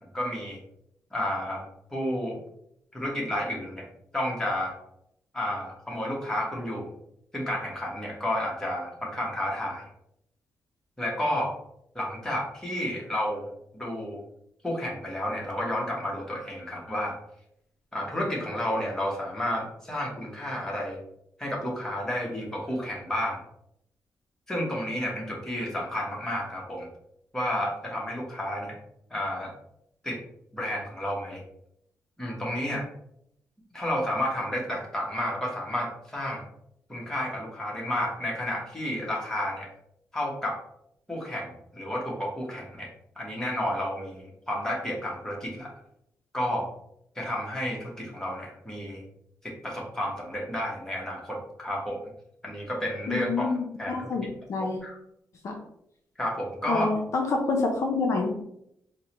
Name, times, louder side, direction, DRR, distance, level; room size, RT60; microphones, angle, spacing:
voice 1, 0.1-0.6 1.1-1.6 1.9-2.4 2.9-3.9 4.1-4.8 5.3-6.8 7.3-9.9 11.0-11.5 11.9-14.2 14.6-17.2 17.9-21.0 21.4-23.4 24.5-26.9 27.3-28.8 29.1-29.5 30.0-30.2 30.5-31.4 32.2-32.8 33.7-36.4 36.9-39.7 40.1-40.6 41.1-42.9 43.2-45.7 46.3-46.7 47.1-49.0 49.4-52.0 52.4-54.1 54.8-54.9 56.2-56.9, left 1 dB, 10° left, -3 dB, 1.1 m, -31 dB
voice 2, 53.1-53.6 53.9-54.8 55.4-55.6 56.7-58.4, left 3 dB, 60° left, 1 dB, 0.5 m, -27 dB
4.4 x 2.2 x 2.9 m, 0.76 s
cardioid pair, 125°, 6 cm